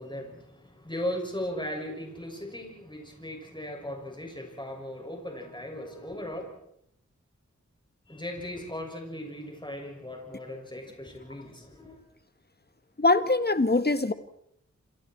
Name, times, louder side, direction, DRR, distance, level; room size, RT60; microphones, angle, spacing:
voice 1, 0.0-6.5 8.1-12.0, left 1 dB, 15° left, 1 dB, 6.8 m, -37 dB
voice 2, 13.0-14.1, left 2 dB, 35° left, 11 dB, 1.6 m, -23 dB
28.0 x 27.5 x 4.6 m, 0.74 s
wide cardioid pair, 65°, 30 cm